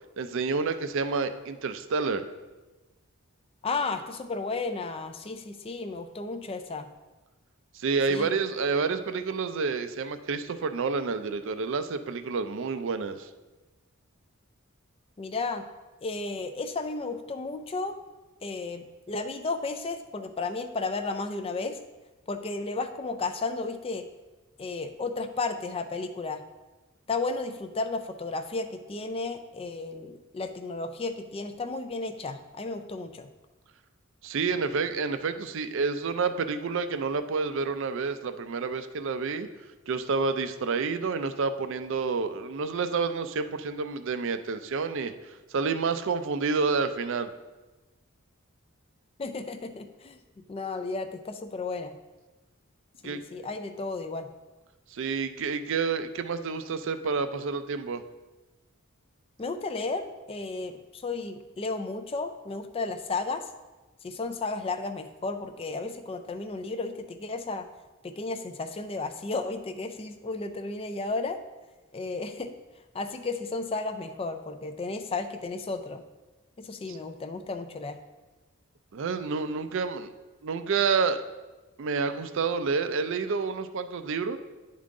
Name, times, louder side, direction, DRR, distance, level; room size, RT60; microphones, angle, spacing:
voice 1, 0.2-2.2 7.7-13.3 34.2-39.5 39.9-47.3 53.0-53.2 54.9-58.0 76.9-77.0 78.9-80.1 80.4-81.2 81.8-84.4, right 4 dB, 60° right, 10 dB, 0.4 m, -29 dB
voice 2, 3.6-6.9 8.1-8.3 15.2-15.6 16.0-18.0 18.4-21.8 22.3-24.1 24.6-26.4 27.1-33.3 49.2-50.2 50.5-51.9 53.0-54.3 59.4-63.5 64.0-67.7 68.0-71.4 71.9-72.5 72.9-76.0 76.6-78.0, left 3 dB, 25° left, 8 dB, 0.4 m, -33 dB
10.5 x 3.7 x 3.7 m, 1.2 s
head